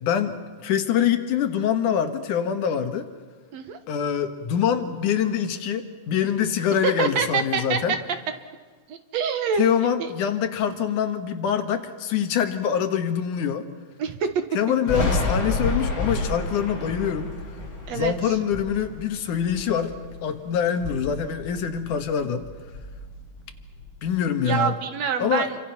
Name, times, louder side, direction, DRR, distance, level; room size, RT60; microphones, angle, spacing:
voice 1, 0.0-3.0 3.9-7.9 9.6-13.6 14.5-17.3 17.9-19.9 20.2-22.5 24.0-24.7 25.2-25.5, left 8 dB, 80° left, 7 dB, 2.9 m, -24 dB
voice 2, 6.8-7.8 8.9-10.1 14.0-14.3 17.9-18.4 24.4-25.6, right 7 dB, 65° right, 8 dB, 2.4 m, -26 dB
Thunder, 14.9-20.3 20.7-22.1 22.4-24.1, left 2 dB, 40° left, 5.4 m, -30 dB
29.0 x 25.0 x 5.9 m, 1.4 s
omnidirectional pair, 3.6 m